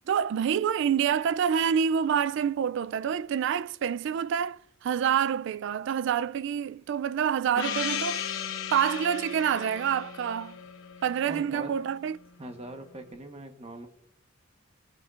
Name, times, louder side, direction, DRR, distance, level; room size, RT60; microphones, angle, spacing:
voice 1, 0.1-8.3 8.7-10.6 11.0-12.2, right 8 dB, 65° right, 0.3 m, -27 dB
Gong, 7.6-11.9, left 8 dB, 85° left, 0.9 m, -36 dB
voice 2, 11.3-11.7 12.4-13.9, right 1 dB, 30° right, 1.2 m, -41 dB
18.5 x 8.1 x 2.5 m
head